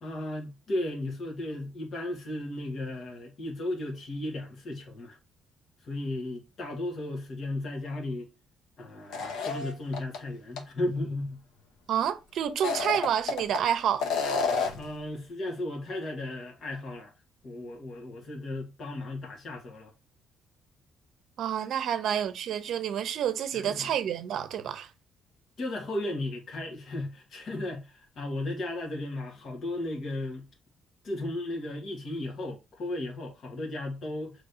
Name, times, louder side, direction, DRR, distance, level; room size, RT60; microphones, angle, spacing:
voice 1, 0.0-5.2 5.8-8.3 8.8-11.4 14.8-17.1 17.4-19.9 23.5-23.9 25.6-30.5 31.0-34.4, left 1 dB, 50° left, 1.5 m, -35 dB
sound 1, 9.1-10.2 10.6-10.7 12.5-13.6 14.0-14.9, left 5 dB, 80° left, 0.8 m, -29 dB
voice 2, 11.9-14.0 21.4-24.9, right 9 dB, 65° right, 0.7 m, -29 dB
6.2 x 3.2 x 2.7 m
cardioid pair, 125°, 0 cm